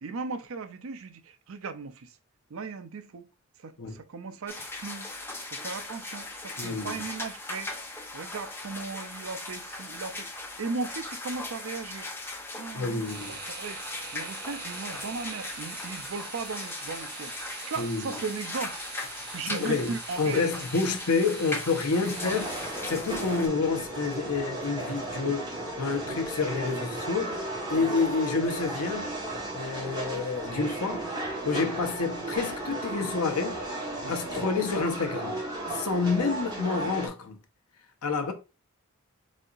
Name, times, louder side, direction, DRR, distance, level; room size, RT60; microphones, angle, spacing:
voice 1, 0.0-2.1 2.5-3.3 3.6-5.1 5.5-7.7 8.1-12.1 12.5-18.8 19.3-20.5 22.2-22.4 23.1-23.2 26.0-26.2 27.7-27.9 34.0-34.2 36.2-36.8, right 4 dB, 65° right, 0.5 m, -37 dB
sound 1, 4.5-23.5, left 2 dB, 10° left, 0.6 m, -39 dB
voice 2, 6.6-7.0 12.7-13.4 17.8-18.2 19.5-22.5 22.8-25.5 25.8-27.4 27.7-29.1 29.5-31.1 31.4-33.6 34.1-35.4 35.7-37.4 38.0-38.3, left 4 dB, 85° left, 0.8 m, -28 dB
sound 2, 13.0-23.1, right 4 dB, 45° right, 1.0 m, -43 dB
sound 3, 21.9-37.1, right 2 dB, 20° right, 1.2 m, -35 dB
4.1 x 3.9 x 2.5 m
head